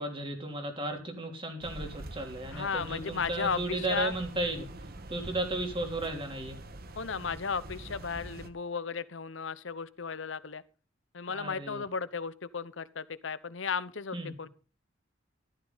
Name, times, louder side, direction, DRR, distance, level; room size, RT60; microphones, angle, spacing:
voice 1, 0.0-4.7 5.1-6.6 11.3-11.8 14.1-14.3, right 2 dB, 25° right, 3.3 m, -34 dB
sound 1, 1.6-8.5, right 1 dB, 50° right, 1.3 m, -45 dB
voice 2, 2.5-4.1 7.0-10.6 11.1-14.5, left 5 dB, 70° left, 0.9 m, -35 dB
14.5 x 13.5 x 4.0 m
head